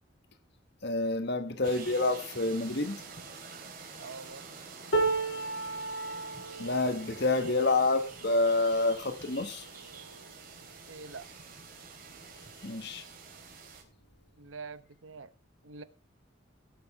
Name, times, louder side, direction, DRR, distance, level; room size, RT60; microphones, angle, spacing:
voice 1, 0.8-3.0 6.6-9.6 12.6-13.0, left 2 dB, 55° left, 1.3 m, -28 dB
sound 1, 1.6-13.8, right 4 dB, 45° right, 3.5 m, -47 dB
voice 2, 4.0-4.4 10.9-11.3 14.4-15.3 15.6-15.8, right 4 dB, 80° right, 1.1 m, -45 dB
sound 2, 4.9-11.1 11.7-11.9 12.1-12.9 13.9-14.0, right 3 dB, 80° left, 2.5 m, -36 dB
17.0 x 6.9 x 4.8 m
head